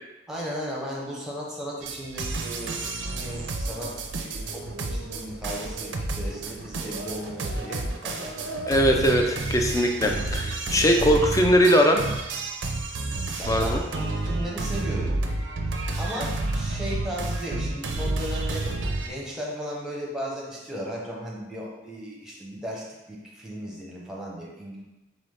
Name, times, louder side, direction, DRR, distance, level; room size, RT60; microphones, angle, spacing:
voice 1, 0.3-8.6 10.8-11.2 13.3-15.1 15.6-18.7 19.0-24.8, equal, 5° right, -4 dB, 0.9 m, -36 dB
sound 1, 1.8-19.1, right 2 dB, 70° right, 0.5 m, -30 dB
voice 2, 8.7-12.0 13.5-13.8, equal, 20° left, 3 dB, 0.4 m, -21 dB
4.0 x 3.9 x 3.3 m, 1.0 s
head